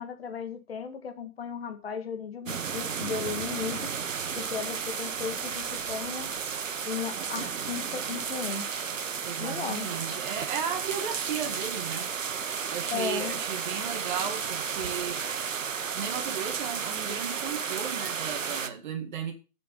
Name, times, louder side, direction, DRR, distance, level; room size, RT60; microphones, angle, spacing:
voice 1, 0.0-3.9 4.3-6.3 6.8-8.9 9.4-9.9 12.9-13.4, left 6 dB, 40° left, 1.7 m, -36 dB
sound 1, 2.4-18.7, right 6 dB, 60° right, 1.3 m, -33 dB
voice 2, 9.2-12.1 12.7-15.2 15.9-19.3, right 7 dB, 30° right, 1.9 m, -35 dB
9.3 x 7.0 x 6.8 m
hypercardioid pair, 155°, 44 cm